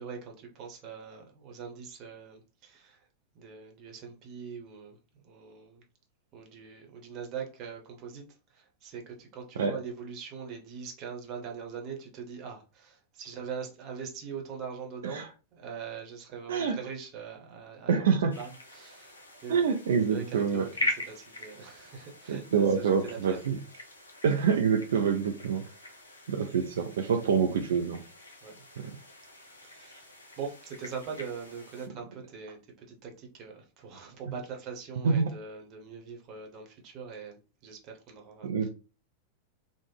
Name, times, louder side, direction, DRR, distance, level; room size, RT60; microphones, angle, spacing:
voice 1, 0.0-3.1 3.3-5.0 5.2-5.8 6.3-19.7 20.1-23.4 28.4-28.7 29.6-38.7, right 6 dB, 35° right, 0.9 m, -42 dB
voice 2, 17.9-18.3 19.5-20.7 22.3-23.6 24.2-25.6 26.3-28.0 28.8-28.9 35.0-35.3 38.4-38.7, right 6 dB, 60° right, 0.3 m, -26 dB
sound 1, 18.3-31.9, left 1 dB, 75° left, 0.6 m, -42 dB
3.1 x 2.0 x 3.3 m
figure-of-eight pair, 90°, 0 cm